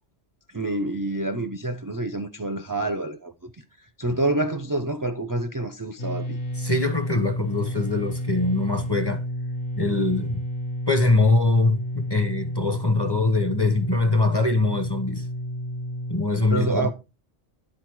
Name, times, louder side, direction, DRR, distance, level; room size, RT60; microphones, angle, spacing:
voice 1, 0.5-3.5 4.0-6.4 16.5-16.9, right 2 dB, 30° right, 0.3 m, -27 dB
sound 1, 6.0-16.2, equal, 55° left, 1.0 m, -31 dB
voice 2, 6.6-9.2 9.8-10.4 10.9-15.3 16.1-16.9, left 2 dB, 25° left, 0.6 m, -23 dB
9.9 x 4.1 x 4.6 m
omnidirectional pair, 1.2 m